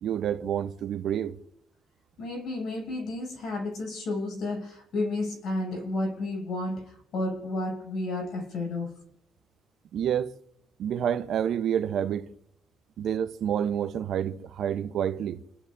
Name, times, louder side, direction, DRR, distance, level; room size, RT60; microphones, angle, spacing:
voice 1, 0.0-1.4 9.9-10.3 10.8-12.3 13.0-15.4, right 9 dB, 70° right, 0.9 m, -28 dB
voice 2, 2.2-8.9, left 2 dB, 70° left, 7.1 m, -32 dB
29.5 x 12.5 x 2.7 m
cardioid pair, 95°, 0 cm